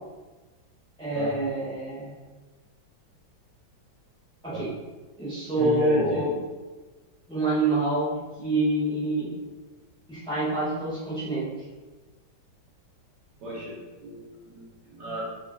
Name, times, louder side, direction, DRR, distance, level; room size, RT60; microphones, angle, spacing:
voice 1, 1.0-2.1 4.4-4.7 5.2-6.3 7.3-8.1 8.4-9.3 10.1-11.5, right 2 dB, 5° left, -10 dB, 0.9 m, -26 dB
voice 2, 5.6-6.2 13.4-15.2, right 1 dB, 65° right, -7 dB, 1.2 m, -34 dB
2.9 x 2.8 x 2.6 m, 1.2 s
omnidirectional pair, 2.2 m